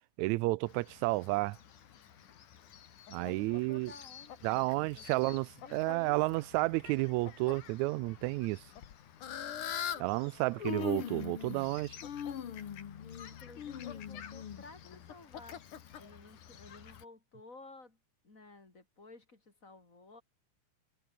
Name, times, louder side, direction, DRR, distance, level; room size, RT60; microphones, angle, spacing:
voice 1, 0.2-1.6 3.1-3.9 4.4-5.4 5.7-8.6 10.0-12.0, right 22 dB, 80° right, 1.8 m, -31 dB
Fowl, 0.7-17.0, left 9 dB, 80° left, 3.7 m, -47 dB
voice 2, 3.1-6.2 13.2-15.6 16.0-18.0 18.2-20.2, left 3 dB, 25° left, 4.1 m, -54 dB
Human voice, 6.8-7.0 8.1-8.2 8.8-8.9 10.0-10.1 10.3-11.8 12.0-15.5 15.9-16.0 16.9-17.0, left 9 dB, 50° left, 2.1 m, -41 dB
omnidirectional pair, 3.6 m